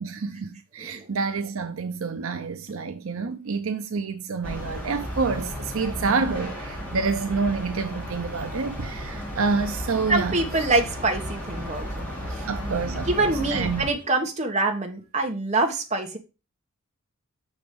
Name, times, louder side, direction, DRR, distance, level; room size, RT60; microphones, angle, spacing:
voice 1, 0.0-10.4 12.4-13.9, right 4 dB, 70° right, 0.6 m, -28 dB
sound 1, 4.4-13.9, equal, 5° left, 2.9 m, -34 dB
voice 2, 10.1-12.0 12.3-12.4 13.1-16.2, right 2 dB, 35° right, 1.4 m, -25 dB
6.1 x 4.9 x 5.2 m
head